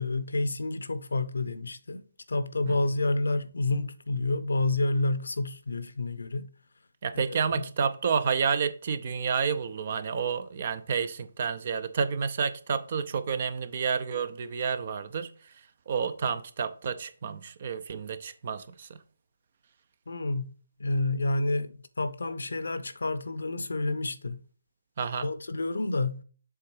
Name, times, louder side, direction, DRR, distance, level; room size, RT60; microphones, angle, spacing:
voice 1, 0.0-2.0 2.3-6.5 7.1-7.7 20.1-20.5 20.8-24.4 25.2-26.2, left 2 dB, 65° left, 0.7 m, -29 dB
voice 2, 7.0-15.5 15.9-19.0 25.0-25.3, right 6 dB, 40° right, 0.6 m, -30 dB
7.3 x 3.7 x 4.6 m
figure-of-eight pair, 145°, 0 cm